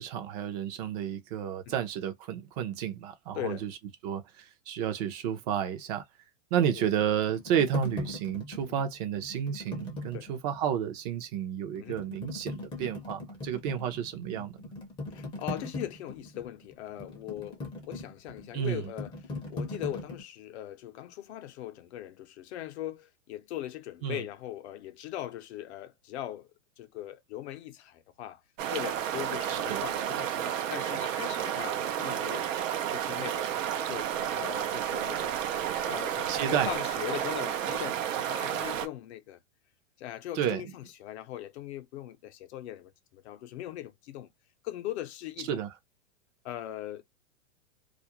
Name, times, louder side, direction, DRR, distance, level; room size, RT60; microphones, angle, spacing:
voice 1, 0.0-3.7 4.0-6.0 6.5-14.7 18.5-18.8 24.0-24.2 29.5-29.8 36.3-36.7 40.4-40.6 45.5-45.7, right 9 dB, 35° right, 0.5 m, -31 dB
voice 2, 3.3-3.7 6.7-6.8 8.7-8.9 10.1-10.3 11.8-12.0 14.3-14.5 15.1-26.5 26.8-28.4 28.7-32.5 32.9-33.5 33.9-34.1 34.3-35.4 35.8-39.4 40.0-44.3 44.6-45.6 46.4-47.0, left 13 dB, 60° left, 0.6 m, -40 dB
sound 1, 6.7-10.7 11.2-11.3 11.8-20.2, left 2 dB, 15° left, 0.6 m, -40 dB
sound 2, 28.6-38.9, right 10 dB, 85° right, 0.6 m, -31 dB
2.4 x 2.0 x 2.8 m
hypercardioid pair, 145°, 38 cm